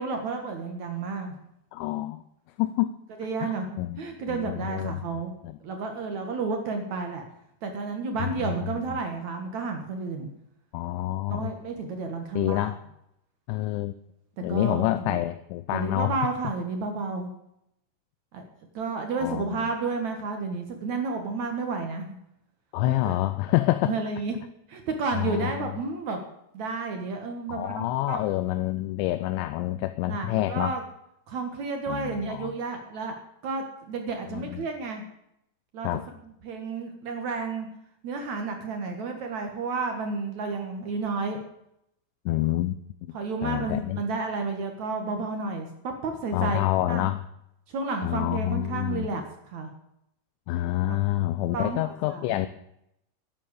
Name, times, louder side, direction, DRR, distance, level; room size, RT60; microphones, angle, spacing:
voice 1, 0.0-1.4 3.2-3.7 4.0-5.3 5.6-7.2 7.6-10.3 11.3-12.7 14.5-15.2 15.7-17.3 18.3-18.4 18.7-22.2 22.9-23.2 23.8-24.3 24.7-26.2 26.5-28.2 30.1-30.8 31.3-33.2 33.4-35.0 35.7-35.9 36.4-37.7 38.0-41.4 43.1-46.6 46.9-47.1 47.7-49.7 50.9-51.0 51.5-52.4, right 4 dB, 60° right, 5 dB, 2.1 m, -31 dB
voice 2, 1.7-2.2 2.6-2.9 3.4-4.0 4.3-5.6 8.4-8.6 10.7-11.5 12.3-12.8 13.5-13.9 14.4-16.2 19.2-19.7 22.7-23.9 25.1-25.7 27.5-30.7 31.9-32.5 34.3-34.7 35.8-36.1 42.3-42.7 43.1-43.2 43.4-44.0 46.3-47.2 48.0-49.1 50.5-52.5, left 16 dB, 85° left, 11 dB, 3.0 m, -27 dB
11.0 x 10.5 x 8.2 m, 0.78 s
omnidirectional pair, 5.2 m